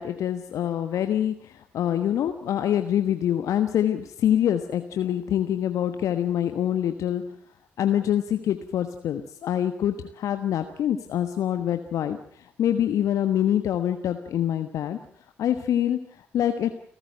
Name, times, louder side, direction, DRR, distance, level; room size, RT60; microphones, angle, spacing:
voice 1, 0.0-7.2 7.8-15.0 15.4-16.7, left 10 dB, 60° left, 9 dB, 1.3 m, -25 dB
29.5 x 13.5 x 7.7 m, 0.64 s
figure-of-eight pair, 40°, 6 cm